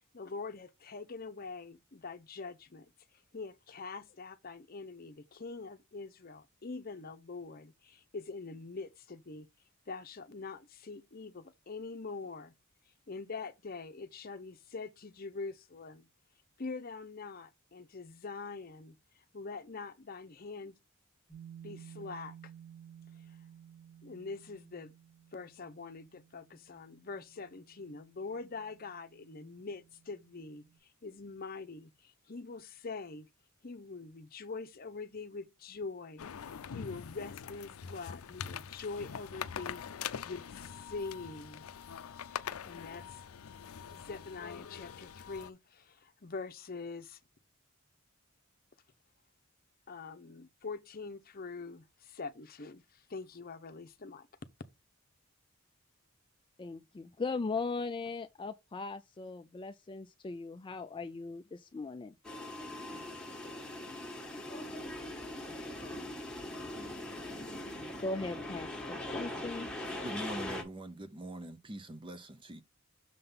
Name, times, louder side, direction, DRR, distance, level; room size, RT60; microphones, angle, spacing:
voice 1, 0.1-2.9 3.3-9.5 9.9-12.5 13.1-16.1 16.6-20.7 21.6-22.5 24.0-24.9 25.3-33.3 33.6-41.6 42.6-43.2 43.9-47.2 49.9-54.3, left 4 dB, 45° left, 0.8 m, -44 dB
sound 1, 21.3-30.8, right 9 dB, 55° right, 3.4 m, -55 dB
sound 2, 36.2-45.5, left 8 dB, 85° left, 0.5 m, -43 dB
voice 2, 56.6-62.1 68.0-69.7, left 3 dB, 25° left, 0.3 m, -38 dB
sound 3, 62.2-70.6, left 1 dB, 5° left, 1.4 m, -41 dB
voice 3, 70.0-72.6, right 1 dB, 25° right, 0.6 m, -43 dB
6.7 x 3.7 x 5.4 m
head